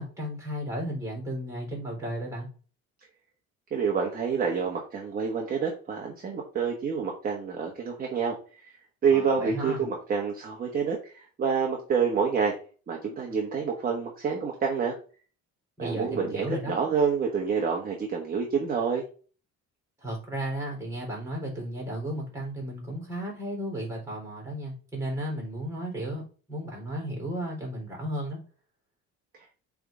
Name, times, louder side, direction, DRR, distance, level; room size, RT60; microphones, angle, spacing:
voice 1, 0.0-2.5 9.1-9.8 15.8-16.7 20.0-26.2 26.5-28.4, right 1 dB, 10° right, 0 dB, 3.8 m, -34 dB
voice 2, 3.7-8.7 9.0-12.5 12.9-15.0 15.8-19.0, right 6 dB, 30° right, 0 dB, 1.2 m, -28 dB
7.8 x 3.6 x 3.8 m, 0.38 s
cardioid pair, 145°, 30 cm